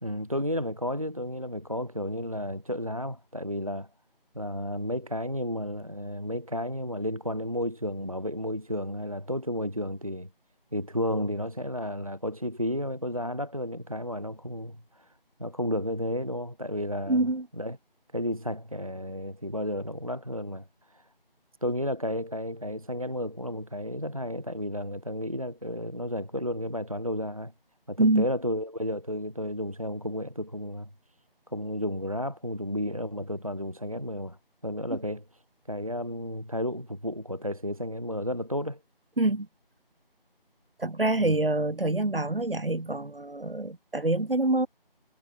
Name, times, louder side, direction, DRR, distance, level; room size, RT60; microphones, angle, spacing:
voice 1, 0.0-3.9 4.3-10.3 10.7-15.1 15.4-17.2 17.6-17.8 18.1-21.1 21.6-27.5 27.9-30.9 31.5-34.4 34.6-35.2 35.7-38.8 41.2-41.4, equal, 35° right, 0.6 m, -32 dB
voice 2, 17.1-17.5 28.0-28.3 34.9-35.0 39.2-39.5 40.8-44.7, right 2 dB, 70° right, 2.7 m, -26 dB
figure-of-eight pair, 175°, 29 cm